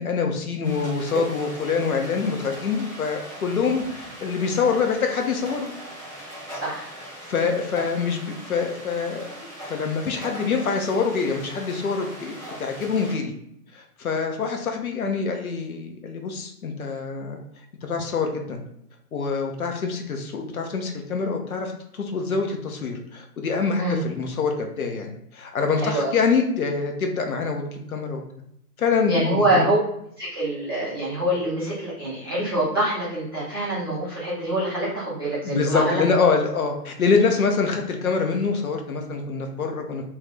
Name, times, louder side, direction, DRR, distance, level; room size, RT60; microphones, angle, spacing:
voice 1, 0.0-5.7 7.3-13.3 13.7-17.4 17.8-18.6 19.1-28.2 28.8-29.7 35.4-40.0, left 5 dB, 60° left, 3 dB, 0.6 m, -25 dB
sound 1, 0.6-13.1, right 1 dB, 5° left, 0.9 m, -39 dB
voice 2, 25.8-26.1 29.1-29.8 30.2-36.0, right 1 dB, 15° right, -12 dB, 0.4 m, -25 dB
2.4 x 2.4 x 3.3 m, 0.75 s
figure-of-eight pair, 125°, 48 cm